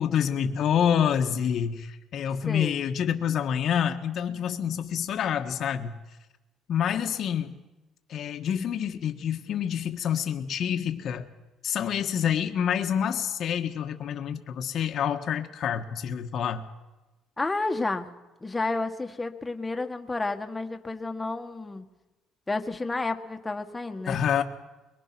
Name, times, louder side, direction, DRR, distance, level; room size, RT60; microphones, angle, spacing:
voice 1, 0.0-6.0 6.7-7.6 8.1-11.3 11.6-16.6 24.1-24.4, left 8 dB, 60° left, 5 dB, 1.5 m, -27 dB
voice 2, 2.5-2.8 17.4-18.1 18.4-21.9 22.5-24.2, left 3 dB, 15° left, 5 dB, 1.8 m, -31 dB
22.5 x 22.5 x 6.2 m, 1.1 s
cardioid pair, 90°, 0 cm